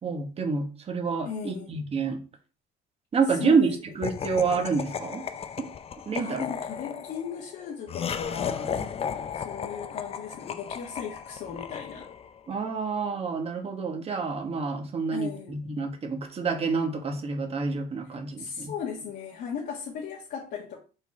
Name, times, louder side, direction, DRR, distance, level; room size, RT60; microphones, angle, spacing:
voice 1, 0.0-2.2 3.1-5.2 5.6-5.7 6.1-6.4 12.5-18.7, right 5 dB, 35° right, 1.5 m, -28 dB
voice 2, 1.2-1.8 3.3-3.7 6.2-8.8 9.3-12.1 15.1-15.6 18.4-20.8, left 7 dB, 70° left, 1.5 m, -37 dB
Laughter, 4.0-12.4, left 7 dB, 35° left, 0.5 m, -35 dB
5.5 x 4.1 x 4.2 m
cardioid pair, 110°, 17 cm